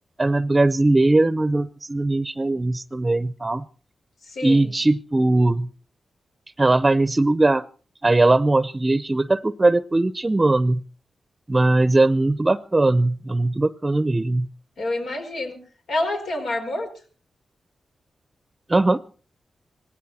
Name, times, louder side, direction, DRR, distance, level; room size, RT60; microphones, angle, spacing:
voice 1, 0.2-3.6 4.4-5.7 6.6-7.6 8.0-10.8 11.5-14.5 18.7-19.0, right 2 dB, 25° right, 15 dB, 0.7 m, -20 dB
voice 2, 4.2-4.7 14.8-15.6 15.9-16.9, left 2 dB, 85° left, 3 dB, 5.1 m, -27 dB
18.5 x 16.0 x 4.3 m, 0.40 s
cardioid pair, 60°, 0 cm